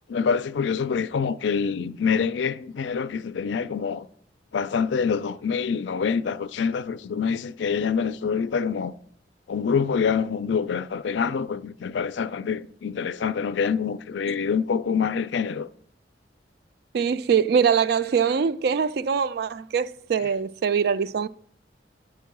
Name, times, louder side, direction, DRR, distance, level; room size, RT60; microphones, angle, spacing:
voice 1, 0.1-4.1 4.5-8.9 9.5-15.7, left 6 dB, 85° left, 0.4 m, -26 dB
voice 2, 16.9-21.3, right 6 dB, 60° right, 0.3 m, -23 dB
10.0 x 4.6 x 6.0 m
head